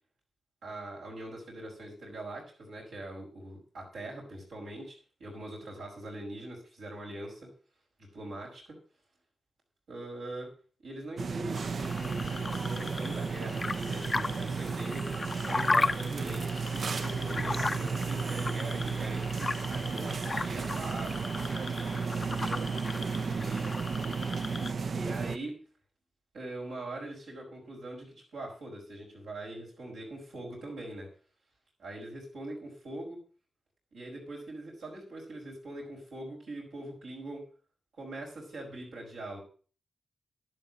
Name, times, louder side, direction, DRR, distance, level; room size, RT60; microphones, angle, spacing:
voice 1, 0.6-7.5 8.1-8.8 9.9-10.5 10.8-15.1 15.4-19.2 19.7-21.1 23.2-23.7 24.9-25.6 26.3-31.1 31.8-33.2 33.9-37.4 38.0-39.4, right 1 dB, 80° right, -3 dB, 5.4 m, -42 dB
Supermarket Ambience, 11.2-25.4, right 5 dB, 65° right, 0.6 m, -33 dB
sound 1, 11.5-24.7, left 3 dB, 40° left, 0.5 m, -36 dB
11.0 x 7.5 x 6.5 m, 0.39 s
supercardioid pair, 45°, 0 cm